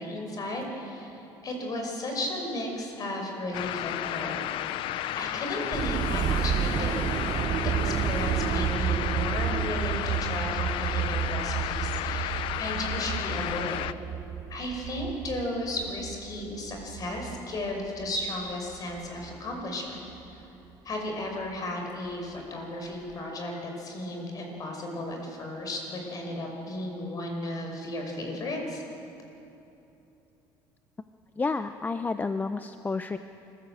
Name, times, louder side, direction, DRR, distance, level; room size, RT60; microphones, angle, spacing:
voice 1, 0.0-4.4 5.2-7.1 7.6-13.8 14.5-20.4 20.8-28.8, left 1 dB, 40° left, 2 dB, 5.5 m, -34 dB
sound 1, 3.5-13.9, left 13 dB, 70° left, 0.6 m, -33 dB
sound 2, 5.7-18.3 18.7-19.5 20.1-20.3, right 9 dB, 45° right, 0.8 m, -31 dB
voice 2, 31.4-33.2, left 4 dB, 20° left, 10 dB, 0.6 m, -30 dB
25.5 x 15.5 x 7.9 m, 2.9 s
cardioid pair, 110°, 9 cm